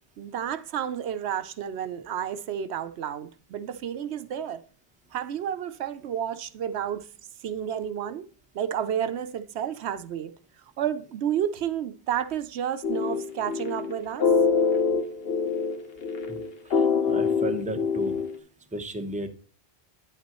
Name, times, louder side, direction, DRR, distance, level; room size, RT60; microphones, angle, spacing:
voice 1, 0.2-4.6 5.1-7.1 7.4-8.3 8.5-10.3 10.6-14.2, right 9 dB, 80° right, 0.9 m, -31 dB
sound 1, 12.8-18.4, left 5 dB, 65° left, 1.2 m, -25 dB
voice 2, 16.6-18.2 18.7-19.3, right 1 dB, 10° right, 0.7 m, -34 dB
9.6 x 8.3 x 3.0 m
omnidirectional pair, 1.1 m